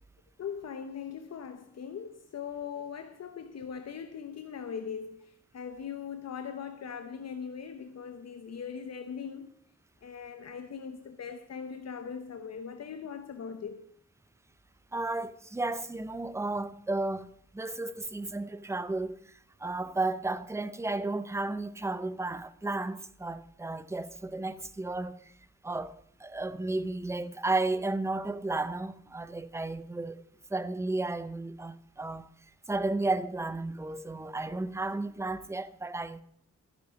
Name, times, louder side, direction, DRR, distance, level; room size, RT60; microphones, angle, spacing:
voice 1, 0.4-9.5 10.0-13.8, left 7 dB, 60° left, 0.9 m, -40 dB
voice 2, 14.9-19.2 19.6-25.3 25.6-25.9 26.2-30.2 30.5-32.3 32.7-36.2, right 2 dB, 10° right, 0.5 m, -33 dB
13.5 x 10.5 x 5.1 m
wide cardioid pair, 140°, 30 cm